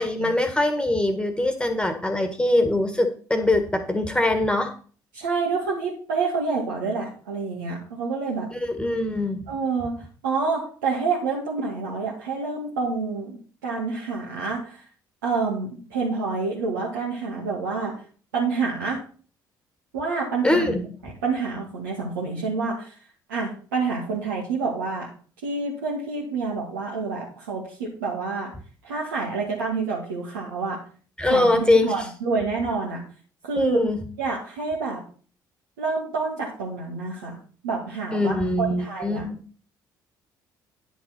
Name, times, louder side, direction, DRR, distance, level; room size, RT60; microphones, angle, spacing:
voice 1, 0.0-4.7 8.5-9.4 20.4-20.8 31.2-32.1 33.5-34.0 38.1-39.4, left 2 dB, 10° left, 6 dB, 1.7 m, -23 dB
voice 2, 5.1-8.5 9.5-13.4 13.6-14.8 15.2-18.0 18.3-19.0 19.9-20.7 21.2-22.9 23.3-25.1 25.4-28.5 28.8-30.8 31.2-33.0 33.4-33.8 34.2-35.0 35.8-37.4 37.6-39.2, right 4 dB, 75° right, -4 dB, 2.1 m, -28 dB
10.0 x 7.0 x 4.4 m, 0.41 s
figure-of-eight pair, 50°, 11 cm